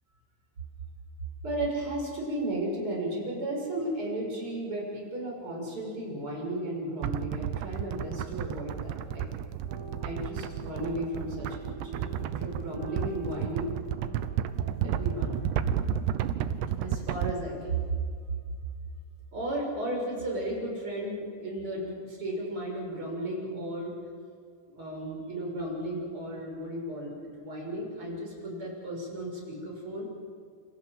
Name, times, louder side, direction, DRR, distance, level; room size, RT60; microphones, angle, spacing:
voice 1, 1.4-9.3 10.0-11.9 12.4-13.8 14.8-15.4 16.8-17.8 19.3-23.9 24.7-30.0, right 1 dB, 30° right, -2 dB, 7.5 m, -34 dB
sound 1, 7.0-17.3, right 10 dB, 75° right, 2.9 m, -32 dB
sound 2, 9.7-15.7, right 2 dB, 45° right, 8.3 m, -47 dB
29.0 x 26.5 x 7.7 m, 2.2 s
omnidirectional pair, 5.2 m